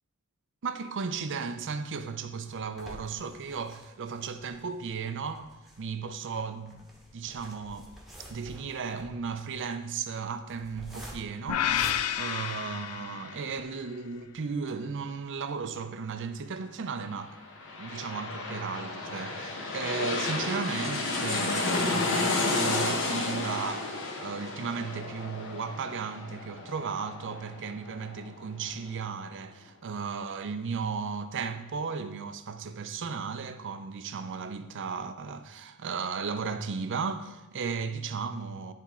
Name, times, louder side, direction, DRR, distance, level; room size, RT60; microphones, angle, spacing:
voice 1, 0.6-5.5 5.8-6.9 7.1-7.9 8.3-17.4 17.8-38.7, right 5 dB, 55° right, 0.5 m, -35 dB
sound 1, 1.8-13.2 13.7-13.8 14.1-14.2 14.6-14.7, equal, ahead, 1.1 m, -49 dB
sound 2, 11.5-13.7, left 10 dB, 85° left, 0.4 m, -30 dB
sound 3, 17.3-28.6 29.0-29.1, left 3 dB, 60° left, 1.0 m, -32 dB
10.5 x 3.5 x 4.3 m
head